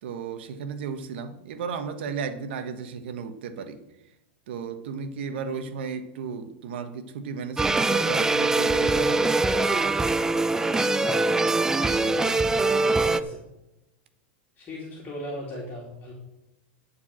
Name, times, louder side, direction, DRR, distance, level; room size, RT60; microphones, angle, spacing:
voice 1, 0.0-3.8 4.5-9.3, right 6 dB, 70° right, 10 dB, 1.2 m, -34 dB
sound 1, 7.6-13.2, right 3 dB, 10° right, 0.5 m, -23 dB
voice 2, 11.7-13.4 14.6-16.1, left 1 dB, 30° left, -3 dB, 2.7 m, -38 dB
11.0 x 4.8 x 7.5 m, 0.92 s
hypercardioid pair, 115°, 6 cm